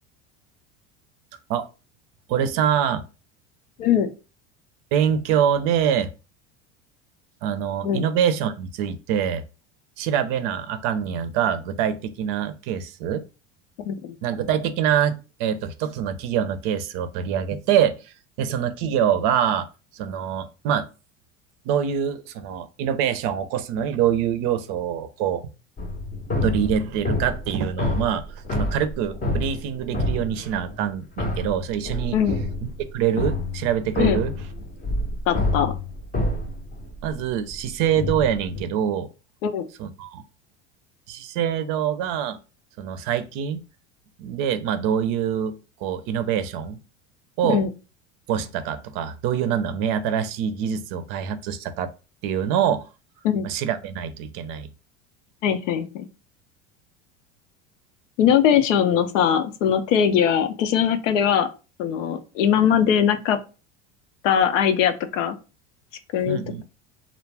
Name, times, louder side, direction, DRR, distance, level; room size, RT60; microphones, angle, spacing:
voice 1, 2.3-3.0 4.9-6.1 7.4-9.4 10.0-13.2 14.2-15.1 15.4-19.7 19.9-20.9 21.7-25.4 26.4-28.2 28.5-32.2 32.9-34.3 37.0-39.1 39.8-40.2 41.1-42.4 42.8-43.6 44.2-46.8 47.4-47.6 48.3-51.9 52.2-52.9 53.4-54.7 66.3-66.6, right 9 dB, 60° right, 11 dB, 0.5 m, -25 dB
voice 2, 3.8-4.1 7.8-8.0 13.9-14.2 32.1-32.4 34.0-34.2 35.3-35.7 39.4-39.7 47.4-47.7 53.2-53.4 55.4-56.1 58.2-61.5 61.8-63.4 64.2-65.4 66.1-66.6, left 8 dB, 80° left, 10 dB, 0.5 m, -21 dB
sound 1, 25.8-30.9 31.2-38.6, left 2 dB, 20° left, 0.6 m, -28 dB
2.3 x 2.0 x 3.3 m, 0.32 s
hypercardioid pair, 85°, 37 cm